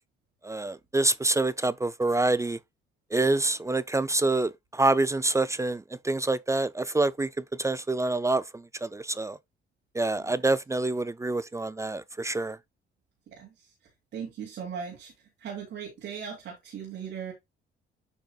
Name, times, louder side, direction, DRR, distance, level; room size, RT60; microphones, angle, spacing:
voice 1, 0.4-2.6 3.1-7.3 7.6-9.4 9.9-12.6, right 2 dB, 15° right, 0.4 m, -26 dB
voice 2, 13.3-13.7 14.1-15.1 15.4-17.3, right 7 dB, 75° right, 2.8 m, -38 dB
8.7 x 5.5 x 2.3 m
cardioid pair, 90°, 20 cm